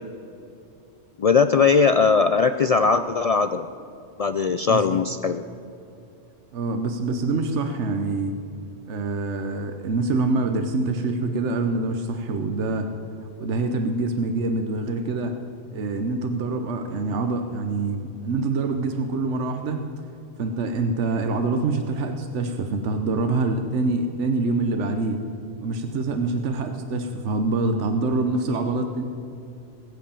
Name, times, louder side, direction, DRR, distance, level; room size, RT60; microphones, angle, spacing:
voice 1, 1.2-3.7 4.2-5.4, left 5 dB, 70° left, 10 dB, 0.3 m, -19 dB
voice 2, 4.7-5.0 6.5-8.3 8.9-12.9 13.4-15.3 15.7-19.8 20.4-25.2 25.6-29.0, right 3 dB, 75° right, 6 dB, 1.2 m, -25 dB
20.5 x 8.2 x 6.9 m, 2.7 s
omnidirectional pair, 1.2 m